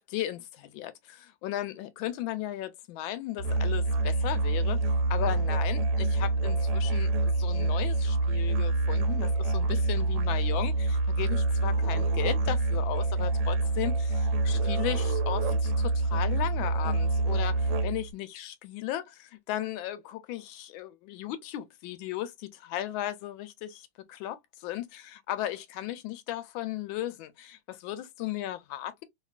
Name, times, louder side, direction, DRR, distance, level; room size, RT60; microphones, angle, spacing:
voice 1, 0.0-4.8 5.1-29.0, left 13 dB, 90° left, 1.3 m, -36 dB
Musical instrument, 3.4-18.1, right 2 dB, 80° right, 1.3 m, -26 dB
2.9 x 2.9 x 2.3 m
omnidirectional pair, 2.1 m